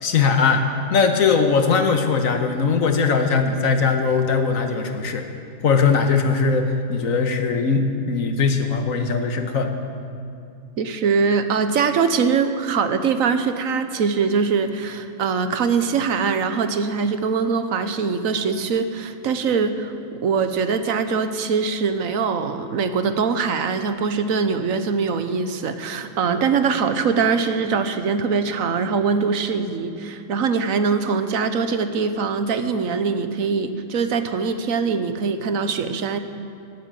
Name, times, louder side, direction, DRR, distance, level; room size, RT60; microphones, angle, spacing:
voice 1, 0.0-5.2 5.6-9.7, left 5 dB, 80° left, 6 dB, 1.6 m, -20 dB
voice 2, 10.8-36.2, right 5 dB, 80° right, 9 dB, 1.3 m, -22 dB
18.5 x 9.1 x 7.6 m, 2.5 s
omnidirectional pair, 1.4 m